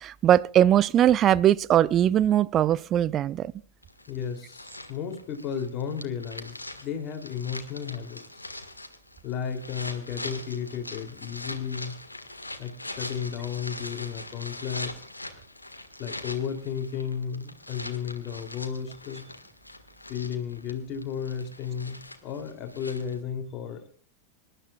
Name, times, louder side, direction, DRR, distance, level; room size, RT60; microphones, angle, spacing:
voice 1, 0.0-3.5, right 11 dB, 30° right, 0.5 m, -21 dB
sound 1, 3.8-23.2, left 2 dB, 85° left, 1.7 m, -42 dB
voice 2, 4.1-8.4 9.2-12.0 12.6-15.0 16.0-19.3 20.1-23.9, left 7 dB, 35° left, 3.0 m, -33 dB
26.0 x 12.5 x 2.4 m
figure-of-eight pair, 90°, 0 cm